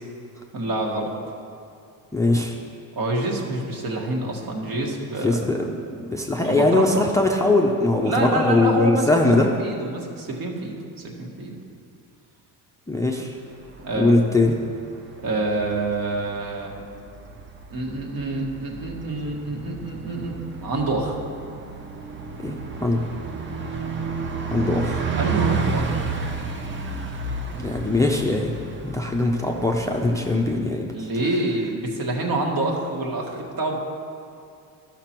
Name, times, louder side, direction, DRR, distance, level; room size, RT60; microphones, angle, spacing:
voice 1, 0.5-1.1 2.9-5.4 6.4-7.0 8.0-11.6 13.8-14.1 15.2-16.7 17.7-21.2 25.2-25.9 30.8-34.0, right 2 dB, 55° right, 0 dB, 1.7 m, -27 dB
voice 2, 2.1-2.5 5.2-9.5 12.9-13.4 13.9-14.5 22.4-23.0 24.5-25.1 27.6-28.5 28.8-30.9, left 2 dB, 10° left, 0 dB, 0.4 m, -21 dB
Bus, 13.5-30.6, right 4 dB, 30° right, 0.7 m, -32 dB
12.5 x 6.0 x 4.4 m, 2.5 s
cardioid pair, 125°, 40 cm